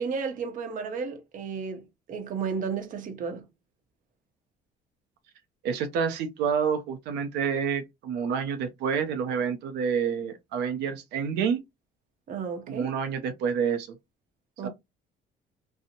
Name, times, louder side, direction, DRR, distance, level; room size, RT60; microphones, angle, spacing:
voice 1, 0.0-3.5 12.3-12.9 14.6-14.7, right 5 dB, 50° right, 0.7 m, -33 dB
voice 2, 5.6-11.6 12.7-14.0 14.6-14.7, right 7 dB, 85° right, 0.5 m, -28 dB
2.6 x 2.0 x 2.7 m
cardioid pair, 110°, 17 cm